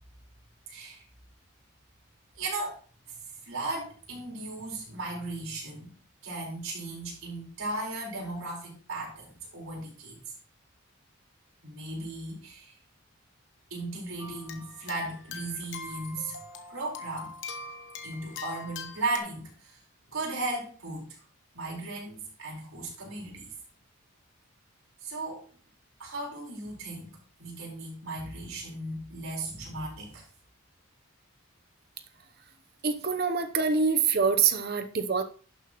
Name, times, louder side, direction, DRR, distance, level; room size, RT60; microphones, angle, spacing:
voice 1, 0.7-1.1 2.4-2.8 3.4-5.9 6.2-10.3 11.6-12.8 13.7-16.4 16.7-17.3 18.0-19.8 20.1-21.2 21.5-23.5 25.0-25.5 26.0-27.1 27.4-30.3, right 2 dB, 75° right, 4.6 m, -36 dB
sound 1, 14.2-19.2, left 4 dB, 55° left, 1.1 m, -42 dB
voice 2, 32.8-35.2, right 5 dB, 45° right, 0.8 m, -25 dB
11.0 x 7.2 x 3.1 m
head